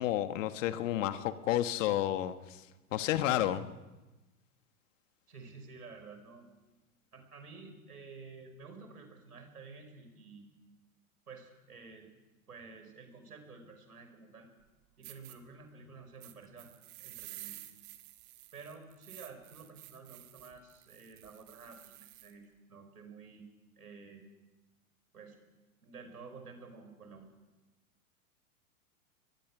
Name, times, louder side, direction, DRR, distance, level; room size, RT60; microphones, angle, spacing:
voice 1, 0.0-2.6 2.9-3.7, left 13 dB, 55° left, 11 dB, 1.5 m, -31 dB
voice 2, 5.3-6.5 7.1-10.5 11.3-12.1 12.5-14.5 15.0-17.6 18.5-23.5 23.8-24.3 25.1-25.4 25.8-27.3, right 4 dB, 80° right, 6 dB, 5.5 m, -51 dB
sound 1, 14.6-14.7 15.0-15.4 16.2-22.3, right 17 dB, 45° right, 2.4 m, -51 dB
22.5 x 21.5 x 6.2 m, 1.1 s
figure-of-eight pair, 95°, 45 cm